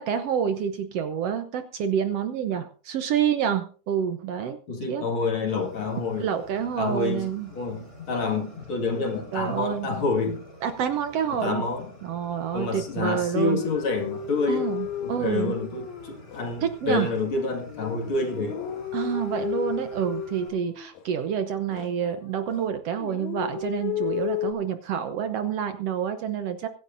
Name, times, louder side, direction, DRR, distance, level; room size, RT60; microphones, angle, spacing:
voice 1, 0.0-4.6 4.9-5.1 6.2-7.5 9.3-9.9 10.6-11.7 12.0-13.6 14.5-15.6 16.6-17.1 18.9-26.7, right 8 dB, 65° right, 1.8 m, -28 dB
voice 2, 4.7-6.3 6.8-10.5 11.3-11.9 12.5-14.7 15.0-18.6, left 3 dB, 45° left, 2.6 m, -28 dB
Fire, 5.5-20.5, equal, 20° left, 5.0 m, -49 dB
sound 1, 13.6-16.5 17.0-21.3 21.7-22.7 23.0-24.5, left 9 dB, 90° left, 2.6 m, -33 dB
24.5 x 11.0 x 2.6 m
omnidirectional pair, 3.3 m